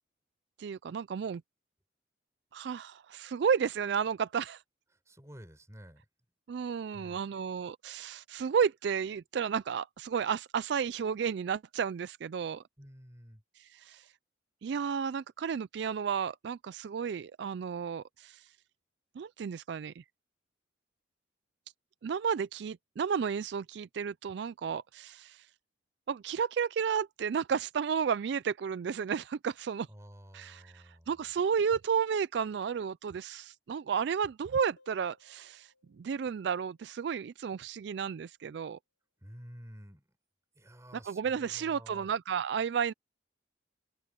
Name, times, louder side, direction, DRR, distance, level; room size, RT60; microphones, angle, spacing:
voice 1, 0.6-1.4 2.5-4.6 6.5-12.6 13.7-14.1 14.6-18.5 19.2-20.0 22.0-25.5 26.1-29.9 30.3-38.8 41.1-42.9, right 7 dB, 65° right, 0.3 m, -32 dB
voice 2, 4.9-6.1 6.9-7.3 12.8-13.4 29.9-31.3 39.2-40.1 40.5-42.1, equal, 15° right, 5.6 m, -51 dB
sound 1, 34.8-38.1, left 3 dB, 65° left, 2.8 m, -71 dB
open air
head